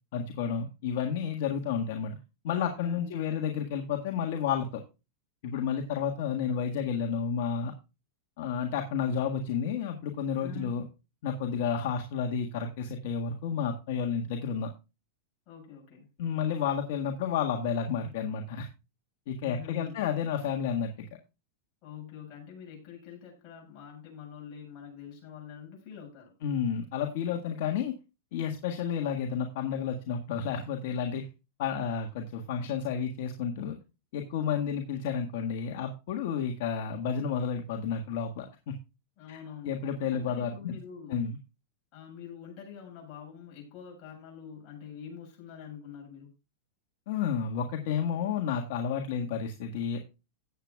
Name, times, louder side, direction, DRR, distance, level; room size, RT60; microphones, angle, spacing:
voice 1, 0.1-2.2 2.4-4.8 5.4-7.7 8.4-10.8 11.2-14.7 16.2-18.7 19.3-21.1 26.4-28.0 28.3-31.3 31.6-33.8 34.1-38.8 39.3-39.4 39.6-40.8 41.1-41.4 47.1-50.0, left 7 dB, 60° left, 1.6 m, -31 dB
voice 2, 2.7-3.4 10.4-10.8 15.5-16.1 19.4-20.1 21.8-26.3 39.2-39.8 40.1-41.2 41.9-46.3, left 7 dB, 40° left, 7.2 m, -45 dB
17.0 x 7.9 x 2.3 m
supercardioid pair, 140°, 0 cm